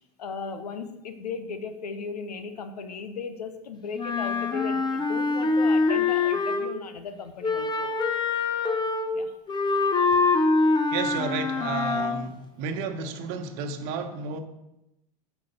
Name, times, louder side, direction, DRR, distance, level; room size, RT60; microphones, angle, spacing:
voice 1, 0.2-7.9 9.1-9.3, left 5 dB, 85° left, 9 dB, 0.9 m, -37 dB
Wind instrument woodwind instrument, 4.0-6.9 7.4-12.3, left 3 dB, 20° left, 1.0 m, -24 dB
voice 2, 10.9-14.4, right 5 dB, 55° right, 6 dB, 1.1 m, -32 dB
6.4 x 4.9 x 6.7 m, 0.90 s
hypercardioid pair, 95°, 20 cm